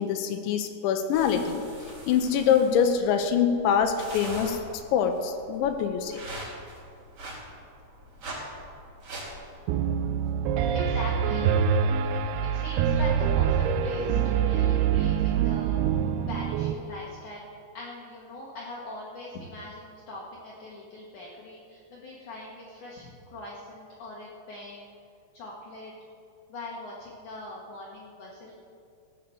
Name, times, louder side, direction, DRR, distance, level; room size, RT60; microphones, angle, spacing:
voice 1, 0.0-1.7 2.1-4.6 4.9-6.2, left 7 dB, 80° left, 7 dB, 3.0 m, -24 dB
sound 1, 1.1-10.3, right 1 dB, 35° right, 4.5 m, -43 dB
Piano, 9.7-16.7, right 8 dB, 90° right, 2.3 m, -25 dB
voice 2, 10.7-11.5 12.5-15.8 16.3-24.9 25.3-25.9 26.5-28.6, left 2 dB, 60° left, -4 dB, 2.2 m, -41 dB
16.5 x 6.6 x 7.1 m, 2.4 s
omnidirectional pair, 5.3 m